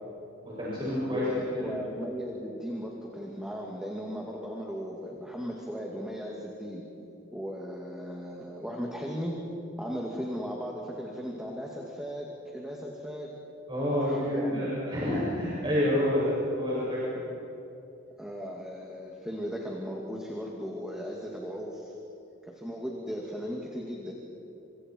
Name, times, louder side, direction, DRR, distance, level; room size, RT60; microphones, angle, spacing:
voice 1, 0.4-1.8 13.7-17.2, left 1 dB, 25° right, -9 dB, 7.4 m, -28 dB
voice 2, 1.1-6.9 7.3-9.4 9.8-13.3 14.0-14.7 18.2-21.9 22.5-24.1, equal, 5° right, -2 dB, 2.4 m, -37 dB
30.0 x 27.0 x 4.7 m, 2.8 s
head